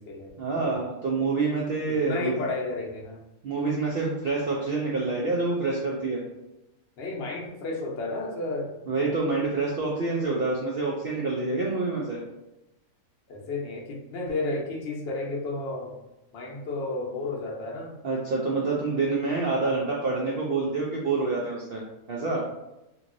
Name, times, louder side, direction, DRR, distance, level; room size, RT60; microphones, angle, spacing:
voice 1, 0.4-2.3 3.4-6.2 8.9-12.2 18.0-22.4, right 3 dB, 70° right, -3 dB, 0.5 m, -27 dB
voice 2, 1.9-3.2 7.0-8.7 13.3-15.9 16.3-18.0, left 2 dB, 60° left, -2 dB, 0.8 m, -32 dB
3.0 x 2.7 x 2.5 m, 0.92 s
omnidirectional pair, 1.5 m